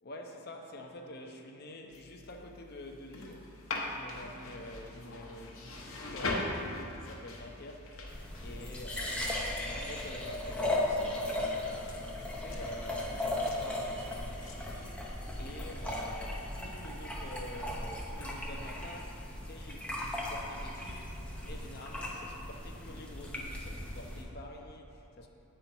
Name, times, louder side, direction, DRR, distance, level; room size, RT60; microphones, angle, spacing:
voice 1, 0.0-7.9 8.4-25.3, left 1 dB, 45° left, 3 dB, 0.6 m, -47 dB
sound 1, 1.9-15.7, left 2 dB, 65° left, 1.0 m, -43 dB
sound 2, 8.1-24.2, left 1 dB, 5° left, 0.7 m, -37 dB
8.6 x 4.4 x 5.3 m, 2.8 s
head